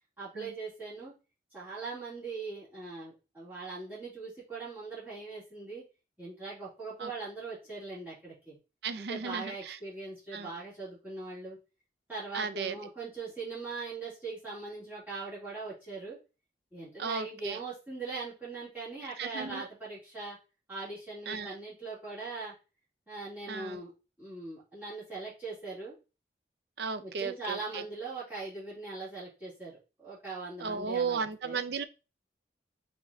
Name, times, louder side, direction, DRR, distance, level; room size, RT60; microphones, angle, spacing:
voice 1, 0.2-1.1 1.5-5.8 6.2-8.6 9.0-11.6 12.1-16.2 16.7-20.4 20.7-22.5 23.1-23.9 24.2-26.0 27.0-31.6, right 3 dB, 10° right, 2.7 m, -41 dB
voice 2, 8.8-9.8 10.3-10.5 12.3-12.8 17.0-17.6 19.2-19.7 21.3-21.6 23.5-23.8 26.8-27.8 30.6-31.8, right 5 dB, 65° right, 0.5 m, -35 dB
4.7 x 4.1 x 2.6 m
head